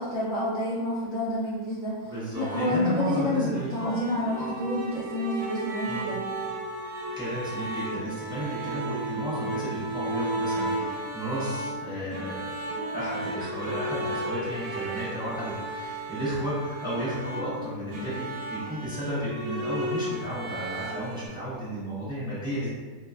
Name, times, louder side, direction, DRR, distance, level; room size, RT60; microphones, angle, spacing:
voice 1, 0.0-2.0 2.3-6.3, left 1 dB, 55° left, -10 dB, 1.3 m, -29 dB
voice 2, 2.0-4.0 4.3-4.5 5.8-6.1 7.1-12.5 12.9-22.7, right 1 dB, 5° right, -11 dB, 0.4 m, -33 dB
sound 1, 2.3-21.3, right 1 dB, 65° right, 0.9 m, -34 dB
2.9 x 2.2 x 2.3 m, 1.4 s
omnidirectional pair, 1.8 m